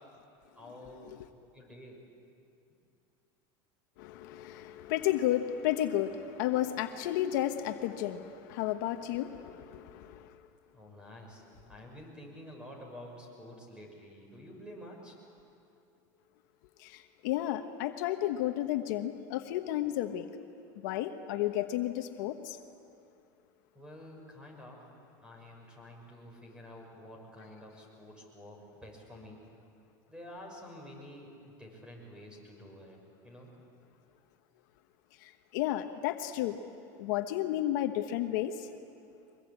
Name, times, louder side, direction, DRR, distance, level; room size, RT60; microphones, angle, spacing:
voice 1, 0.6-1.1 1.5-2.0 10.7-15.1 23.7-24.8 25.2-29.4 30.1-33.0 33.2-33.5, left 1 dB, 10° right, 1 dB, 6.1 m, -49 dB
voice 2, 4.0-10.3 16.8-20.3 20.8-22.6 35.2-36.6 37.0-38.7, left 13 dB, 70° left, 7 dB, 1.2 m, -32 dB
23.5 x 22.0 x 8.7 m, 2.5 s
supercardioid pair, 135°, 11 cm